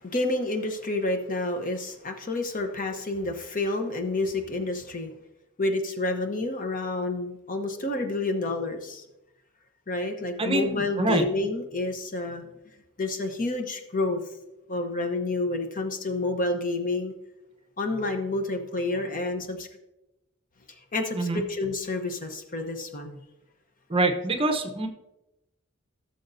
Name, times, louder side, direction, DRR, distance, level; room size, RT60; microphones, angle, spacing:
voice 1, 0.0-5.1 5.6-9.0 9.9-12.4 13.0-14.2 14.7-17.1 17.8-19.7 20.9-23.2, left 2 dB, 40° left, 6 dB, 0.9 m, -29 dB
voice 2, 10.4-11.2 21.1-21.4 23.9-24.9, right 2 dB, 25° right, 5 dB, 0.8 m, -25 dB
15.5 x 6.7 x 2.7 m, 0.93 s
head